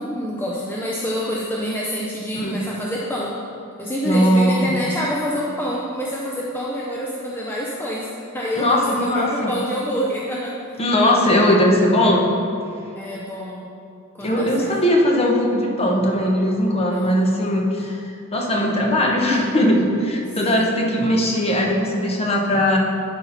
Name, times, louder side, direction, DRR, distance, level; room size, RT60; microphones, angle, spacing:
voice 1, 0.0-3.3 3.8-8.1 8.3-10.8 12.9-13.6 14.2-14.7 16.9-17.2 20.4-20.7, equal, 10° left, -5 dB, 0.6 m, -27 dB
voice 2, 4.0-4.7 8.6-9.5 10.8-12.3 14.2-18.0 18.3-22.8, left 1 dB, 30° left, -1 dB, 1.0 m, -19 dB
11.0 x 4.3 x 4.0 m, 2.7 s
head